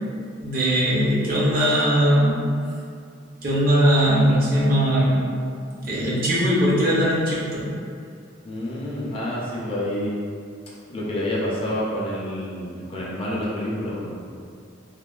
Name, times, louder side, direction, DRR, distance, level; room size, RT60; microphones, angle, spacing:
voice 1, 0.4-2.3 3.4-5.2 5.7-7.7, equal, 50° right, -7 dB, 0.7 m, -20 dB
voice 2, 8.4-10.1 10.9-14.2, left 1 dB, 30° left, -6 dB, 0.4 m, -28 dB
3.2 x 2.2 x 2.3 m, 2.3 s
head